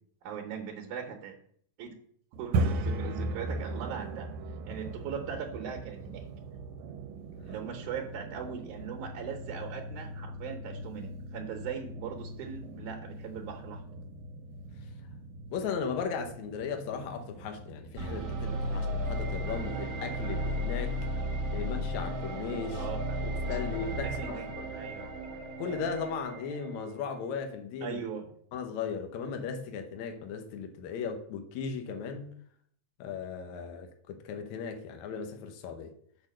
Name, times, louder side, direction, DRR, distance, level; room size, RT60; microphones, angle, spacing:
voice 1, 0.2-1.4 1.8-1.9 2.4-4.3 4.7-6.2 7.4-13.8 22.8-23.2 24.0-24.5 24.7-25.1 27.8-28.3, right 7 dB, 70° right, 2 dB, 2.2 m, -39 dB
sound 1, 2.3-22.2, right 2 dB, 90° right, 2.4 m, -39 dB
voice 2, 15.5-21.0 21.5-22.9 23.5-24.7 25.6-28.0 28.5-32.3 33.0-35.9, left 6 dB, 70° left, 5 dB, 2.0 m, -37 dB
sound 2, 18.0-27.0, equal, 50° right, 1.5 m, -34 dB
6.6 x 6.0 x 6.2 m, 0.63 s
omnidirectional pair, 4.0 m